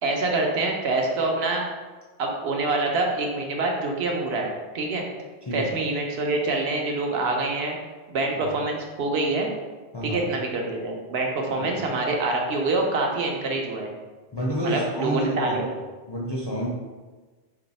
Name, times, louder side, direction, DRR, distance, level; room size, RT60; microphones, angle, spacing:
voice 1, 0.0-1.6 2.2-4.5 4.7-5.1 5.5-7.8 8.1-9.5 10.0-13.9 14.6-15.6, right 2 dB, 80° right, 1 dB, 0.9 m, -25 dB
voice 2, 5.4-5.8 8.3-8.6 9.9-10.3 11.5-11.8 14.3-15.8 16.1-16.7, equal, 40° left, -5 dB, 0.4 m, -30 dB
3.1 x 2.6 x 4.0 m, 1.3 s
omnidirectional pair, 1.1 m